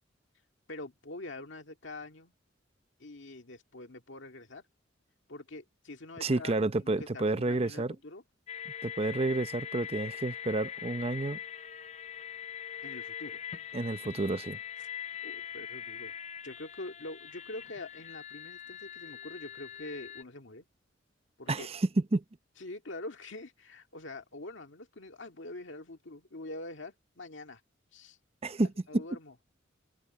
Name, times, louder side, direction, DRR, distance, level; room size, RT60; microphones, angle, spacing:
voice 1, 0.7-2.3 3.0-4.6 5.3-8.2 12.8-13.4 15.2-16.2 16.4-20.7 21.4-21.7 22.6-27.6 27.9-28.2 28.9-29.3, left 2 dB, 70° left, 2.1 m, -45 dB
voice 2, 6.2-8.0 8.8-11.4 13.7-14.6 21.5-22.2 28.4-28.7 28.9-29.0, right 2 dB, 30° right, 0.7 m, -30 dB
sound 1, 8.5-20.2, left 10 dB, 35° left, 0.4 m, -42 dB
open air
head